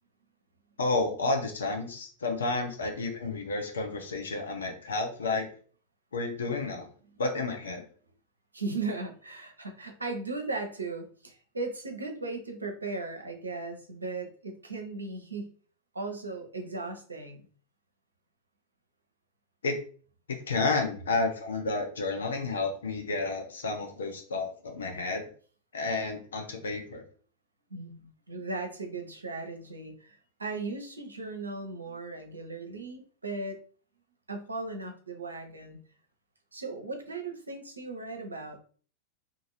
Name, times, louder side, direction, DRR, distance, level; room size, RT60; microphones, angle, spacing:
voice 1, 0.8-5.5 6.1-6.9 7.2-7.9 19.6-19.7 20.5-25.2 25.7-27.0, left 3 dB, 70° left, 4 dB, 0.5 m, -31 dB
voice 2, 8.5-15.5 15.9-17.4 27.7-33.6 34.3-35.8 36.5-38.6, right 3 dB, 80° right, 3 dB, 0.6 m, -37 dB
2.5 x 2.5 x 3.0 m, 0.42 s
figure-of-eight pair, 90°, 0 cm